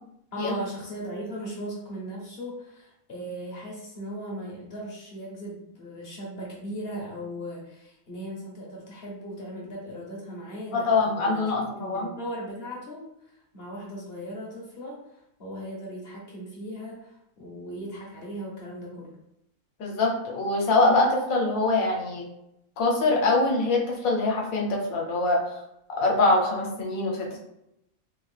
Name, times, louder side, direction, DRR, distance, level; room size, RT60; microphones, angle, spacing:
voice 1, 0.3-11.4 11.8-19.2, equal, 50° left, -3 dB, 0.8 m, -38 dB
voice 2, 10.7-12.1 19.8-22.2 22.8-25.4 26.0-27.4, left 2 dB, 75° left, -1 dB, 1.2 m, -24 dB
3.3 x 2.4 x 3.2 m, 0.83 s
omnidirectional pair, 1.5 m